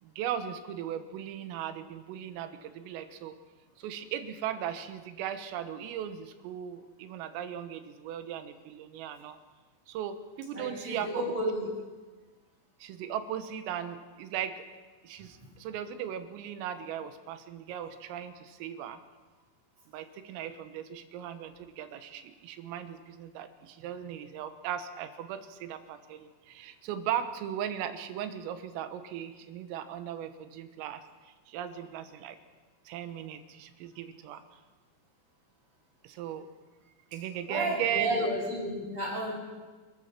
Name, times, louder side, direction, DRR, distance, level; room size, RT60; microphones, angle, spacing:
voice 1, 0.0-3.4 3.8-9.4 9.9-11.4 12.8-14.6 15.0-19.0 19.9-32.4 32.9-34.4 36.0-36.5 37.1-38.3, right 9 dB, 85° right, 9 dB, 3.9 m, -37 dB
voice 2, 10.5-11.7 37.5-39.4, equal, 30° right, -3 dB, 7.4 m, -31 dB
29.5 x 14.5 x 6.0 m, 1.3 s
omnidirectional pair, 5.8 m